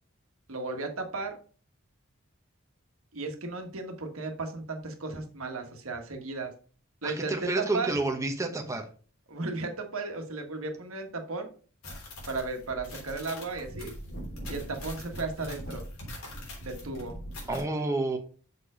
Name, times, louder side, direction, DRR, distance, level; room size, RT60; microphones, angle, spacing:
voice 1, 0.5-1.4 3.1-6.5 7.0-7.9 9.3-11.5 12.3-13.9 14.5-15.9 16.6-17.2, right 3 dB, 80° right, 4 dB, 1.5 m, -35 dB
voice 2, 7.0-8.9 17.5-18.2, right 2 dB, 15° right, 3 dB, 0.9 m, -29 dB
sound 1, 11.8-17.6, equal, 90° left, 3.4 m, -41 dB
6.7 x 4.4 x 4.9 m, 0.40 s
head